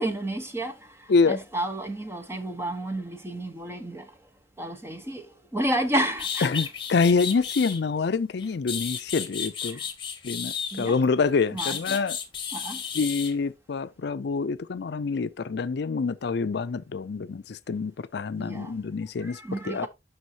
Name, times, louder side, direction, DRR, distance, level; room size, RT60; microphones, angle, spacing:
voice 1, 0.0-4.1 4.6-6.5 9.7-9.9 10.7-11.0 11.5-12.0 12.5-12.8 18.4-18.8 19.2-19.9, right 1 dB, 15° right, 1.1 m, -31 dB
sound 1, 5.8-5.9 6.2-7.8 8.4-11.0 11.6-13.3, left 7 dB, 30° left, 1.6 m, -33 dB
voice 2, 6.4-9.8 10.2-12.2 12.9-19.4 19.7-19.9, left 4 dB, 65° left, 0.4 m, -26 dB
9.5 x 6.2 x 2.8 m
head